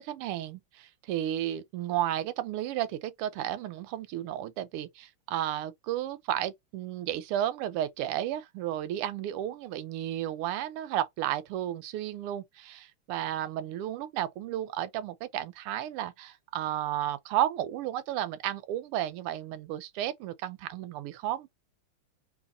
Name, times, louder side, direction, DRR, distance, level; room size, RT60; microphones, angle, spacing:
voice 1, 0.0-21.5, right 12 dB, 85° right, 1.6 m, -33 dB
3.5 x 3.0 x 3.8 m
omnidirectional pair, 2.4 m